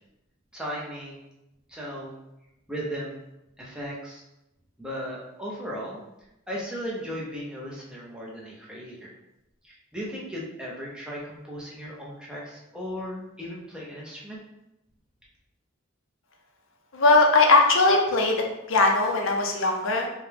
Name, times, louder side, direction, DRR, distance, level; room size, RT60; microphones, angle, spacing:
voice 1, 0.5-1.2 1.7-2.2 2.7-3.2 3.6-4.2 4.8-6.0 6.5-9.1 9.6-14.4, equal, 5° right, -5 dB, 0.7 m, -36 dB
voice 2, 16.9-18.4 18.7-20.1, left 3 dB, 60° left, 2 dB, 0.6 m, -19 dB
4.9 x 2.2 x 3.3 m, 0.89 s
head